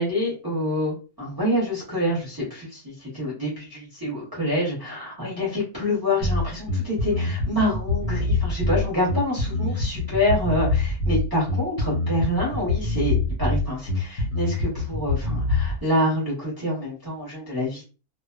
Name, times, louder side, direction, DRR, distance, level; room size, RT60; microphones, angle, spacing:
voice 1, 0.0-17.8, left 1 dB, 20° right, -7 dB, 1.0 m, -26 dB
Bass guitar, 6.2-15.8, left 2 dB, 75° left, 1.1 m, -25 dB
2.5 x 2.1 x 2.3 m, 0.33 s
omnidirectional pair, 1.4 m